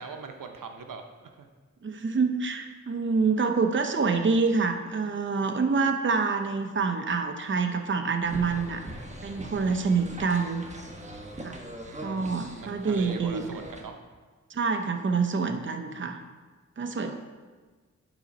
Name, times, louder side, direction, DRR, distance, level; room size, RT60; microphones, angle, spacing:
voice 1, 0.0-1.5 11.8-14.0, right 5 dB, 85° right, 5 dB, 0.7 m, -41 dB
voice 2, 1.8-8.8 9.2-10.6 11.4-11.6 12.0-13.4 14.5-16.2 16.8-17.1, right 4 dB, 40° right, 6 dB, 0.7 m, -26 dB
sound 1, 8.2-13.8, right 1 dB, 20° right, 1.1 m, -42 dB
9.9 x 4.0 x 5.3 m, 1.4 s
wide cardioid pair, 70°, 32 cm